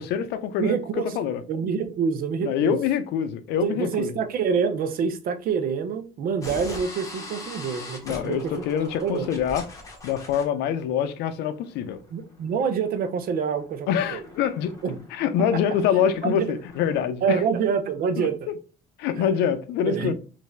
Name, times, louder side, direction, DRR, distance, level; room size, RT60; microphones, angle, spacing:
voice 1, 0.0-0.8 1.2-1.4 2.4-4.1 8.0-9.7 10.0-12.0 13.9-14.7 15.1-17.4 18.2-18.3 19.0-20.1, left 8 dB, 85° left, 0.5 m, -25 dB
voice 2, 0.6-1.0 1.5-2.8 3.6-8.5 9.0-9.3 12.1-14.2 14.8-15.0 16.2-16.5 17.2-18.4 19.1-19.3 19.9-20.1, right 6 dB, 60° right, 0.6 m, -26 dB
sound 1, 6.4-17.0, left 2 dB, 20° left, 1.1 m, -42 dB
3.2 x 2.6 x 3.1 m
cardioid pair, 110°, 17 cm